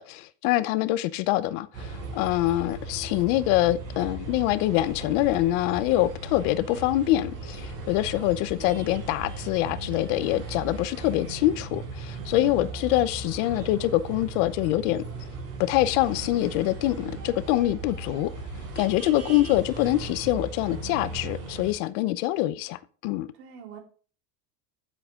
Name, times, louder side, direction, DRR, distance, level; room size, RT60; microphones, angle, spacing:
voice 1, 0.0-15.1 15.6-18.3 18.8-23.3, left 15 dB, 50° left, 0.8 m, -25 dB
sound 1, 1.7-21.7, right 3 dB, 30° right, 5.3 m, -37 dB
voice 2, 12.4-12.9 23.4-23.8, right 7 dB, 70° right, 4.1 m, -45 dB
12.5 x 7.8 x 3.6 m
cardioid pair, 175°, 46 cm